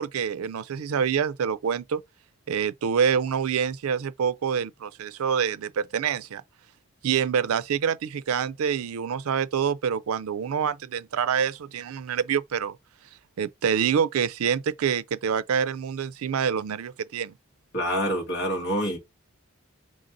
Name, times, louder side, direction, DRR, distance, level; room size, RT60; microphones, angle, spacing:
voice 1, 0.0-2.0 2.5-6.4 7.0-12.8 13.4-17.3, right 7 dB, 90° right, 0.4 m, -26 dB
voice 2, 17.7-19.0, equal, 50° left, 1.8 m, -26 dB
3.9 x 3.2 x 4.0 m
head